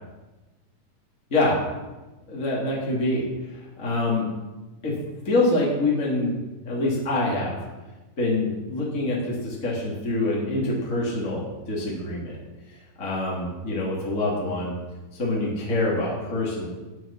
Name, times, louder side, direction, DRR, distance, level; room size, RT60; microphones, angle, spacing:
voice 1, 1.3-1.6 2.3-4.3 4.8-5.0 5.2-6.3 6.6-7.6 8.2-12.3 13.0-14.7 15.1-16.7, left 2 dB, 25° left, -5 dB, 2.5 m, -25 dB
11.0 x 9.6 x 5.8 m, 1.1 s
omnidirectional pair, 4.1 m